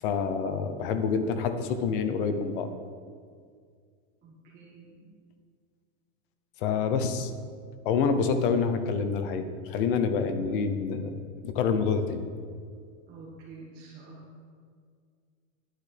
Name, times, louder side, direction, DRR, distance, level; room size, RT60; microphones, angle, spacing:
voice 1, 0.0-2.7 6.6-7.3 7.8-11.2 11.4-12.3, left 5 dB, 40° left, 9 dB, 0.7 m, -27 dB
voice 2, 4.2-5.1 13.1-14.3, right 3 dB, 20° right, -7 dB, 1.7 m, -48 dB
10.0 x 9.5 x 3.4 m, 2.1 s
supercardioid pair, 165°, 43 cm